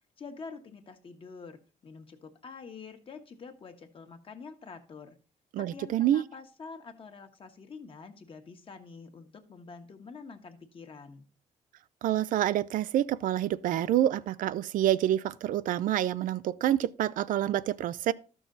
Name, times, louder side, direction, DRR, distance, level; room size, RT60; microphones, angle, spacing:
voice 1, 0.2-5.1 5.6-11.2, left 5 dB, 40° left, 1.4 m, -47 dB
voice 2, 5.5-6.2 12.0-18.1, right 12 dB, 75° right, 0.4 m, -27 dB
12.5 x 6.2 x 3.9 m
cardioid pair, 110°, 14 cm